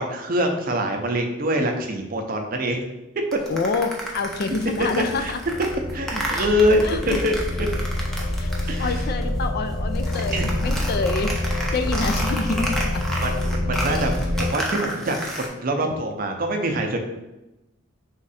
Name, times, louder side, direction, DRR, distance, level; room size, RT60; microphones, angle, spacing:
voice 1, 0.0-2.8 4.9-5.3 5.9-7.7 8.7-9.0 10.3-10.5 13.2-14.1 14.4-17.0, equal, 45° right, 3 dB, 0.6 m, -24 dB
sound 1, 3.3-9.3 9.6-15.5, right 1 dB, ahead, 0.6 m, -32 dB
voice 2, 3.5-5.4 6.3-6.5 6.8-7.2 8.4-8.5 8.8-11.3 11.7-13.0, left 3 dB, 50° left, 7 dB, 0.3 m, -27 dB
sound 2, 4.3-14.5, left 1 dB, 90° left, 1.5 m, -27 dB
3.6 x 3.2 x 4.1 m, 0.97 s
head